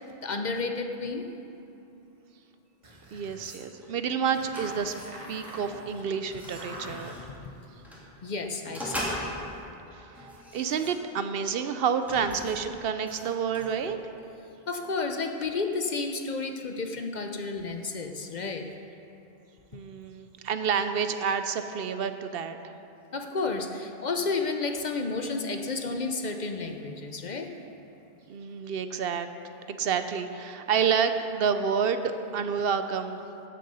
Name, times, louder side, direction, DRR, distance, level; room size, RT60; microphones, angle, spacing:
voice 1, 0.2-1.3 8.2-9.5 14.7-18.7 23.1-27.5, left 3 dB, 50° left, 5 dB, 0.8 m, -31 dB
sound 1, 2.8-8.0, equal, 30° right, 1.3 m, -45 dB
voice 2, 3.1-4.9 5.3-7.2 9.9-14.0 19.7-22.7 28.3-29.3 29.7-33.2, right 6 dB, 70° right, 9 dB, 0.8 m, -29 dB
sound 2, 3.4-3.9 4.5-5.2 5.4-5.7 6.1-7.2 7.8-8.0 8.6-9.6 10.1-11.3 11.9-14.0, equal, ahead, 2.4 m, -39 dB
14.5 x 6.5 x 5.5 m, 2.8 s
omnidirectional pair, 1.1 m